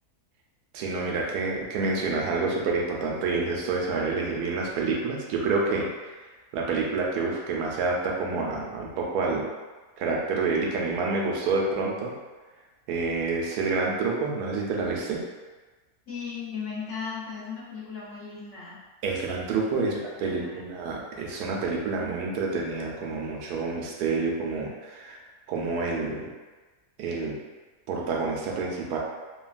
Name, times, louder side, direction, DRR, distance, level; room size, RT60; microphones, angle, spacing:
voice 1, 0.7-5.9 6.5-9.5 10.0-12.1 12.9-15.2 19.0-25.2 25.5-26.3 27.0-27.4 27.9-29.0, right 3 dB, 85° right, -2 dB, 1.1 m, -28 dB
voice 2, 16.1-18.8 19.8-20.7, left 6 dB, 60° left, -7 dB, 0.9 m, -37 dB
3.1 x 2.2 x 2.4 m, 1.3 s
omnidirectional pair, 1.6 m